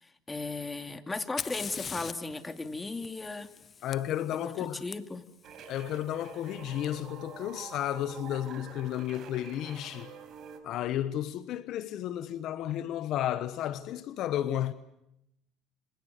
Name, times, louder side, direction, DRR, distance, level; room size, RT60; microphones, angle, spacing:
voice 1, 0.0-3.5 4.3-5.2, left 3 dB, 20° left, 2.6 m, -36 dB
Fire, 1.2-5.0 6.8-6.9 7.8-8.2, left 6 dB, 35° left, 0.9 m, -42 dB
voice 2, 3.8-4.8 5.7-10.1 10.6-14.7, left 12 dB, 65° left, 1.1 m, -33 dB
sound 1, 5.4-10.6, right 7 dB, 55° right, 5.3 m, -47 dB
27.5 x 27.0 x 6.6 m
supercardioid pair, 80°, 0 cm